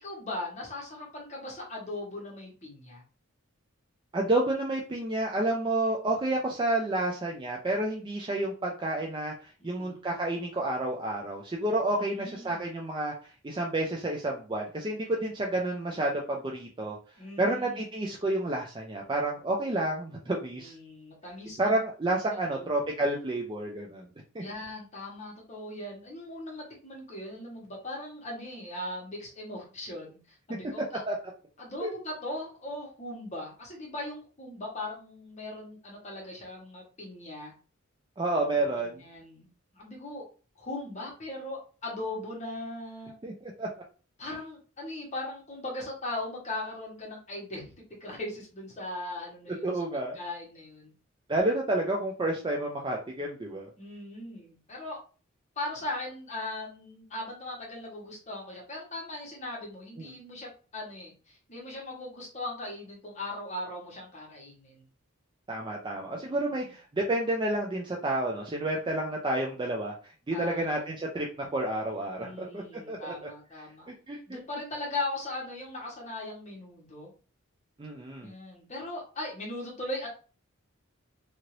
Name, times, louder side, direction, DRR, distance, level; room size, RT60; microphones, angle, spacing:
voice 1, 0.0-3.0 9.6-10.1 11.9-12.7 17.2-17.9 20.5-21.8 22.3-22.7 24.4-31.0 31.6-37.5 38.6-40.2 40.6-43.1 44.2-49.8 50.1-50.9 53.8-55.0 55.6-64.8 66.1-66.7 70.3-71.0 72.2-73.9 74.3-77.1 78.2-80.1, left 2 dB, 35° left, -2 dB, 1.0 m, -39 dB
voice 2, 4.1-17.0 17.4-20.7 21.6-24.0 24.3-24.4 30.5-30.6 31.1-31.2 31.8-31.9 38.2-39.0 43.2-43.7 49.6-50.2 51.3-53.7 60.0-60.1 65.5-73.1 73.9-74.4 77.8-78.3, right 1 dB, 20° right, -1 dB, 0.4 m, -30 dB
2.8 x 2.6 x 3.0 m, 0.37 s
head